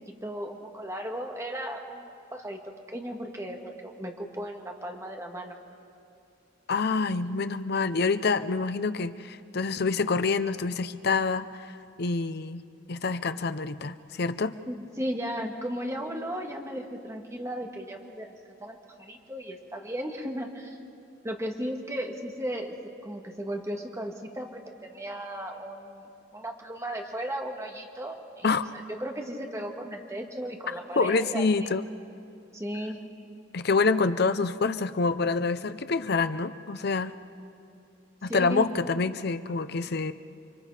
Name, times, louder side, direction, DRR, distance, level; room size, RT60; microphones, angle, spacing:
voice 1, 0.1-2.6 2.9-5.6 14.7-18.3 18.6-20.8 21.2-22.7 23.0-31.4 32.5-33.0 38.2-38.7, equal, 15° right, 1 dB, 2.0 m, -36 dB
voice 2, 6.7-12.6 12.9-14.5 28.4-28.7 31.0-31.9 33.5-37.1 38.2-40.1, left 4 dB, 55° left, 12 dB, 0.7 m, -27 dB
30.0 x 24.5 x 5.0 m, 2.6 s
head